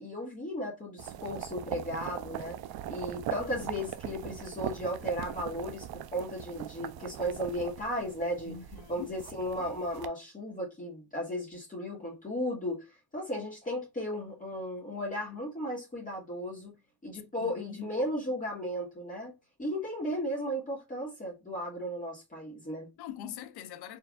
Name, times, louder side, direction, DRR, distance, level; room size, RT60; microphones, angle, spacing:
voice 1, 0.0-2.6 2.9-8.6 8.9-12.8 13.1-16.7 17.0-19.3 19.6-22.9, equal, 20° left, 1.9 m, -35 dB
sound 1, 1.0-10.1, right 11 dB, 75° right, 0.6 m, -41 dB
voice 2, 8.5-9.1 17.4-17.9 23.0-24.0, left 9 dB, 85° left, 0.6 m, -43 dB
4.6 x 3.2 x 2.3 m
cardioid pair, 95°, 37 cm